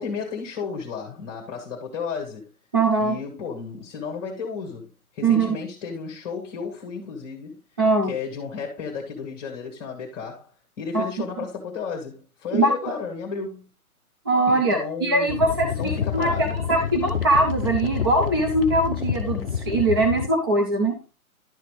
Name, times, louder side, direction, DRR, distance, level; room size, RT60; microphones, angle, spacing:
voice 1, 0.0-2.5 3.0-7.6 8.0-10.5 10.8-13.7 14.5-15.4 15.7-16.6, left 5 dB, 20° left, 1.4 m, -33 dB
voice 2, 2.7-3.2 5.2-5.6 7.8-8.1 10.9-11.0 12.5-12.7 14.3-21.0, right 2 dB, 15° right, 0.6 m, -21 dB
sound 1, 15.3-20.3, left 8 dB, 40° left, 0.7 m, -28 dB
11.0 x 5.7 x 3.2 m
figure-of-eight pair, 140°, 44 cm